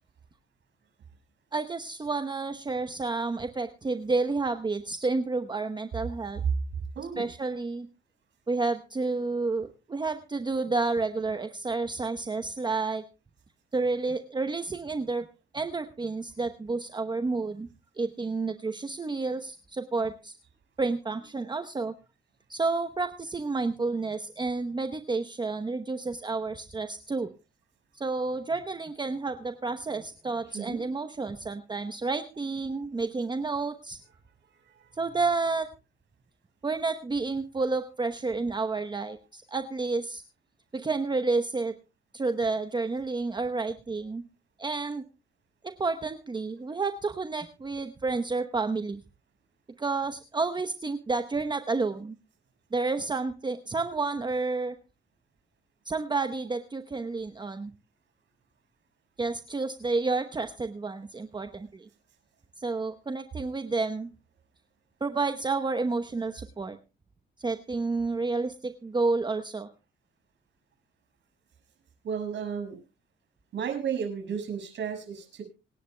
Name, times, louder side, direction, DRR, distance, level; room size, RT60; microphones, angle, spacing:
voice 1, 1.5-6.4 7.2-7.9 8.5-13.0 13.7-15.3 15.5-17.7 18.0-20.4 20.8-21.9 22.5-27.3 27.9-34.0 34.9-35.7 36.6-40.2 40.7-41.7 42.1-44.2 44.6-45.0 45.6-49.0 49.8-52.2 52.7-54.7 55.9-57.7 59.2-61.9 62.6-64.1 65.0-66.8 67.4-69.7, right 3 dB, 20° right, 8 dB, 0.9 m, -30 dB
voice 2, 6.9-7.3 30.4-30.8 34.0-34.1 34.5-35.2 72.0-72.8 73.5-75.4, right 7 dB, 65° right, 4 dB, 6.0 m, -34 dB
26.5 x 10.0 x 2.2 m, 0.29 s
cardioid pair, 90°, 20 cm